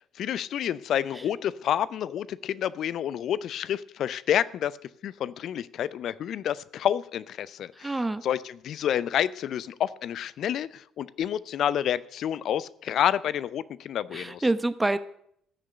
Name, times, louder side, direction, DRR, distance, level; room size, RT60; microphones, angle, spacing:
voice 1, 0.2-4.7 5.0-14.5, left 10 dB, 55° left, 19 dB, 0.6 m, -29 dB
voice 2, 7.8-8.2 14.1-15.0, right 2 dB, 15° right, 13 dB, 1.0 m, -26 dB
15.5 x 6.6 x 7.9 m, 0.69 s
hypercardioid pair, 50°, 0 cm